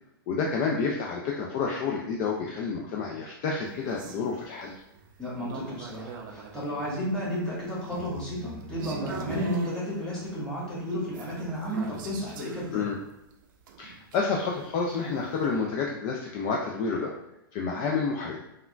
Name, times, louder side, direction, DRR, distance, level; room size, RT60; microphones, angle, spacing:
voice 1, 0.3-4.7 12.7-13.0 13.8-17.1 17.5-18.4, left 5 dB, 40° left, -1 dB, 0.4 m, -29 dB
sound 1, 3.6-15.6, right 5 dB, 55° right, 0.5 m, -42 dB
voice 2, 5.2-12.9, equal, 5° left, -9 dB, 1.3 m, -32 dB
3.5 x 2.2 x 2.3 m, 0.88 s
hypercardioid pair, 125°, 12 cm